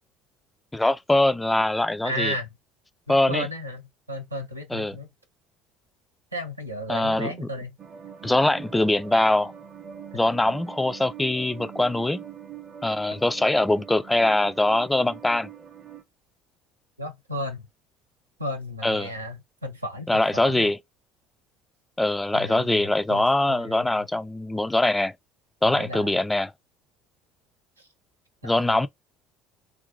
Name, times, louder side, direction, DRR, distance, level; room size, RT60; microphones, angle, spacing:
voice 1, 0.7-2.3 3.1-3.5 4.7-5.0 6.9-7.5 8.2-9.5 10.1-12.2 12.8-15.5 18.8-19.1 20.1-20.8 22.0-25.1 25.6-26.5 28.4-28.9, left 2 dB, 10° left, 0.3 m, -23 dB
voice 2, 2.0-2.5 3.1-5.1 6.3-7.8 10.2-10.5 17.0-17.7 18.4-20.7 22.3-24.1 25.6-26.1 27.8-27.9 28.4-28.9, equal, 85° right, 0.6 m, -34 dB
sound 1, 7.8-16.0, right 8 dB, 35° right, 0.6 m, -43 dB
2.5 x 2.3 x 3.8 m
figure-of-eight pair, 60°, 0 cm